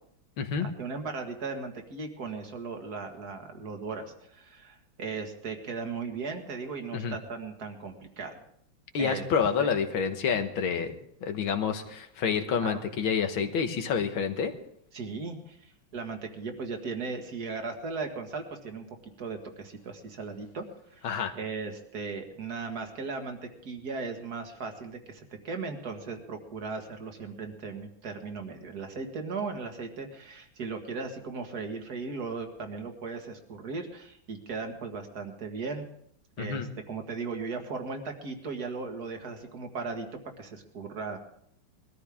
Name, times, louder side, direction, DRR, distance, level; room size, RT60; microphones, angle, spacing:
voice 1, 0.6-8.4 9.0-9.3 9.6-9.7 12.5-12.8 14.9-18.9 19.2-20.7 20.9-21.1 21.3-35.9 36.4-40.1 40.4-41.2, right 4 dB, 50° right, 5 dB, 2.1 m, -37 dB
voice 2, 8.9-14.5 21.0-21.3 36.4-36.7, left 6 dB, 85° left, 7 dB, 2.1 m, -28 dB
21.5 x 13.5 x 3.6 m, 0.69 s
omnidirectional pair, 2.2 m